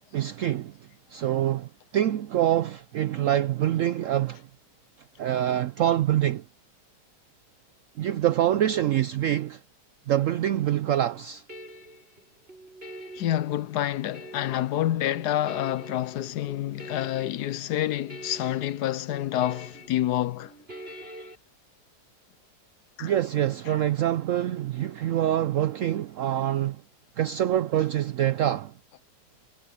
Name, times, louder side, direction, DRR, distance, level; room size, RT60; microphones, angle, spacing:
voice 1, 0.1-0.7 1.1-4.4 5.2-6.4 8.0-9.6 10.1-11.4 23.0-26.8 27.2-28.7, right 12 dB, 75° right, 0.7 m, -25 dB
sound 1, 10.8-21.4, equal, 35° right, 7.0 m, -46 dB
voice 2, 13.1-20.5 23.0-23.1 23.7-23.8, left 12 dB, 75° left, 1.2 m, -28 dB
omnidirectional pair, 1.9 m